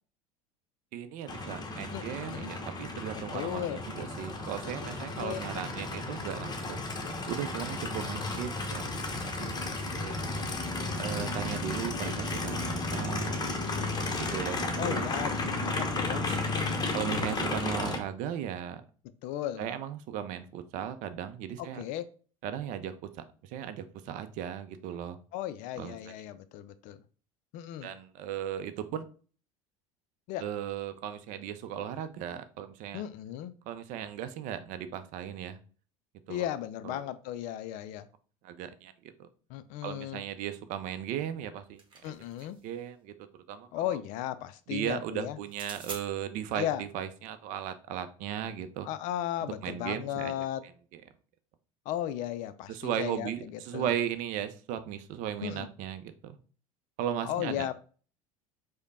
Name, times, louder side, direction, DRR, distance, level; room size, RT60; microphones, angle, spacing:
voice 1, 0.9-6.8 7.3-9.0 9.4-10.1 11.0-13.4 14.2-15.1 16.1-16.4 16.9-18.8 19.6-21.8 22.4-25.2 25.8-26.2 27.8-29.1 30.4-33.0 33.6-35.6 36.3-36.5 36.8-37.0 38.4-39.3 39.8-42.1 42.6-44.0 44.7-48.9 49.4-50.3 50.9-51.0 52.7-56.4 57.0-57.7, right 9 dB, 50° right, 11 dB, 0.5 m, -37 dB
Aircraft, 1.3-18.0, left 2 dB, 25° left, 0.9 m, -33 dB
voice 2, 1.9-2.5 3.3-3.8 5.2-5.4 14.8-16.9 19.2-19.7 21.6-22.0 25.3-27.0 27.5-27.9 30.3-30.4 32.9-33.5 36.3-38.1 39.5-40.2 42.0-42.6 43.7-45.4 46.6-46.8 48.8-50.6 51.9-53.9 55.4-55.7 57.2-57.7, left 12 dB, 50° left, 13 dB, 0.4 m, -35 dB
sound 1, 41.4-42.7 45.5-46.0, right 3 dB, 30° right, 1.3 m, -45 dB
4.9 x 2.2 x 4.1 m, 0.39 s
figure-of-eight pair, 70°, 18 cm